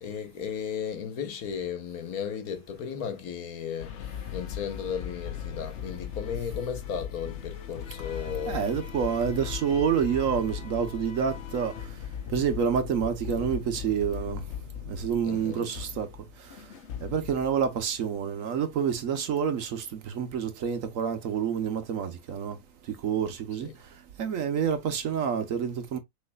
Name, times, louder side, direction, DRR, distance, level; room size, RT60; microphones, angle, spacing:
voice 1, 0.0-8.6 15.2-15.7 23.6-23.7, left 7 dB, 80° left, 1.4 m, -35 dB
sound 1, 3.8-17.8, left 9 dB, 60° left, 0.9 m, -38 dB
voice 2, 8.5-12.0 12.3-14.4 14.8-16.1 16.4-16.6 17.0-22.6 22.9-23.7 24.2-26.0, right 7 dB, 70° right, 1.2 m, -28 dB
6.4 x 3.2 x 2.2 m
omnidirectional pair, 1.5 m